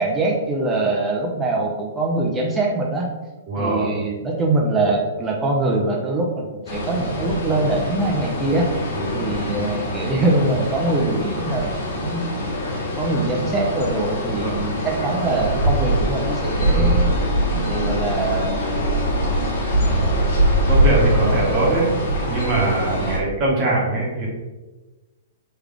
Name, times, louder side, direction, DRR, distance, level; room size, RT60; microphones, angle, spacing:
voice 1, 0.0-3.1 3.6-8.7 9.1-12.4 13.0-17.1 17.5-19.4 19.8-20.4 21.2-21.7 23.0-23.2, right 2 dB, 15° right, -1 dB, 0.8 m, -23 dB
voice 2, 3.5-3.9 8.9-9.3 14.3-14.5 20.7-21.9 22.3-24.3, right 2 dB, 35° right, -3 dB, 1.4 m, -22 dB
sound 1, 6.7-23.2, equal, 60° left, 1.0 m, -23 dB
3.3 x 3.3 x 3.5 m, 1.2 s
hypercardioid pair, 115°, 0 cm